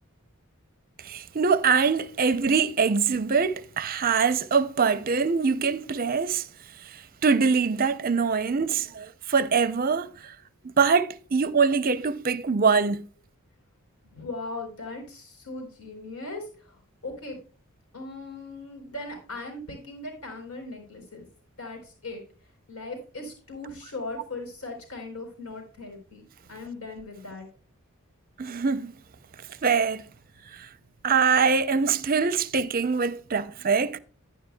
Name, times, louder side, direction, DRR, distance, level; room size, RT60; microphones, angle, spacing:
voice 1, 1.0-6.5 6.9-10.3 10.8-13.0 28.4-28.9 29.6-30.0 30.5-30.7 31.0-34.0, right 5 dB, 40° right, 0.6 m, -23 dB
voice 2, 14.0-17.4 17.9-21.2 21.6-22.2 22.7-26.2 26.5-27.5, left 2 dB, 80° left, 4.1 m, -39 dB
11.5 x 10.0 x 2.3 m
head